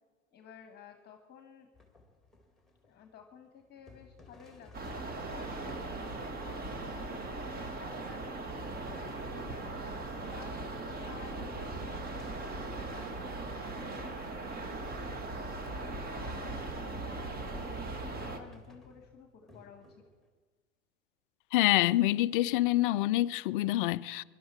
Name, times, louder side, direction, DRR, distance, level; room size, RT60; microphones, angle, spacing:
voice 1, 0.3-1.7 2.8-15.3 15.7-20.1, left 7 dB, 25° left, 1.4 m, -54 dB
sound 1, 1.7-5.7 8.7-14.4 18.1-20.3, left 3 dB, ahead, 2.1 m, -58 dB
sound 2, 4.7-18.4, right 2 dB, 25° right, 1.7 m, -39 dB
voice 2, 21.5-24.2, left 16 dB, 45° left, 0.5 m, -26 dB
23.5 x 11.5 x 4.5 m
figure-of-eight pair, 85°, 39 cm